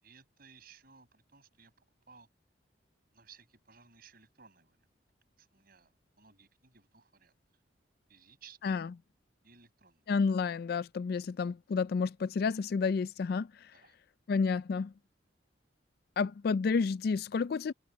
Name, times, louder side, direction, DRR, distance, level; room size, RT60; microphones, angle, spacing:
voice 1, 0.0-2.3 3.1-4.9 5.4-7.3 8.1-8.8 9.4-10.1 13.7-14.0 16.2-16.3, right 6 dB, 50° right, 5.8 m, -59 dB
voice 2, 10.1-13.5 14.3-14.9 16.2-17.7, left 5 dB, 55° left, 0.3 m, -30 dB
head